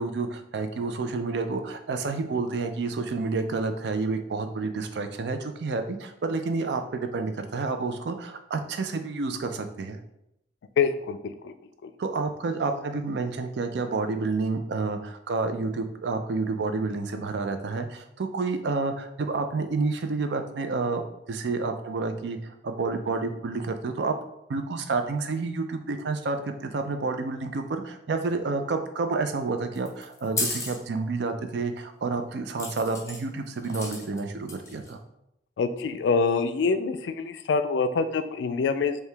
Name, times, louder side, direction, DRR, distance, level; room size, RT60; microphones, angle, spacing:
voice 1, 0.0-10.0 12.0-21.0 21.3-22.4 22.6-24.1 24.5-35.0, right 3 dB, 75° right, 7 dB, 0.4 m, -29 dB
voice 2, 10.8-11.5 11.8-11.9 35.6-39.0, left 5 dB, 85° left, 10 dB, 0.3 m, -25 dB
sound 1, 29.8-30.8 32.6-33.2 33.6-34.2 34.5-34.9, left 3 dB, 15° left, 0.7 m, -32 dB
4.5 x 2.3 x 3.3 m, 0.82 s
head